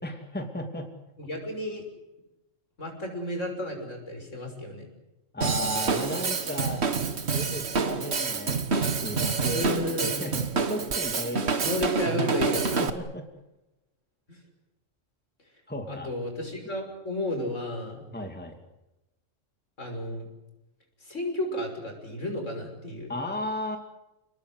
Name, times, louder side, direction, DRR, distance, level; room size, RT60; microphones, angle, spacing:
voice 1, 0.0-0.9 5.3-6.8 7.3-9.6 10.0-10.4 10.7-11.8 12.8-13.3 15.7-16.1 18.1-18.6 23.1-23.8, left 1 dB, 5° left, 4 dB, 2.5 m, -34 dB
voice 2, 1.2-1.8 2.8-4.9 9.5-10.3 11.6-12.9 14.3-14.4 15.9-18.0 19.8-20.2 21.0-23.2, left 1 dB, 70° left, 3 dB, 6.5 m, -32 dB
Drum kit / Drum, 5.4-12.9, right 5 dB, 55° right, 1.7 m, -27 dB
29.0 x 20.0 x 8.1 m, 0.96 s
omnidirectional pair, 1.3 m